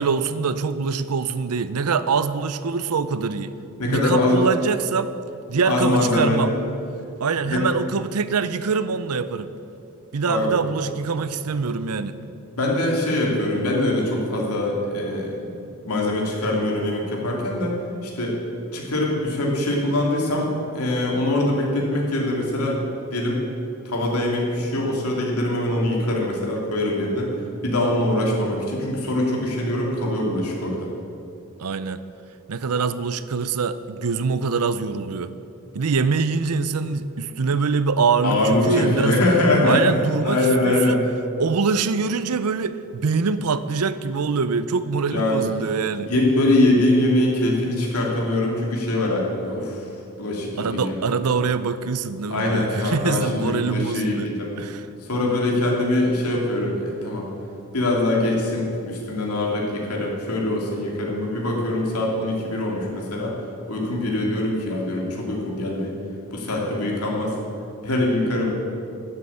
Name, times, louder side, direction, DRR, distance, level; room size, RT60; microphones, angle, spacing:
voice 1, 0.0-3.6 3.8-5.1 5.5-6.5 7.2-9.5 10.1-12.2 31.6-32.0 32.5-35.3 35.7-39.2 39.6-40.4 40.6-41.0 41.4-46.1 50.6-54.3 54.6-54.9, right 5 dB, 85° right, 13 dB, 0.6 m, -24 dB
voice 2, 3.8-4.4 5.6-6.6 7.5-7.6 10.3-10.5 12.5-15.5 15.8-17.8 18.0-18.4 18.7-22.8 23.1-23.4 23.8-27.3 27.6-30.9 38.2-39.8 40.2-41.0 45.1-45.5 46.0-51.0 52.3-54.5 55.0-57.3 57.7-63.3 63.7-65.9 66.3-67.4 67.8-68.5, left 1 dB, 90° left, -2 dB, 2.7 m, -23 dB
11.5 x 7.8 x 8.7 m, 2.6 s
head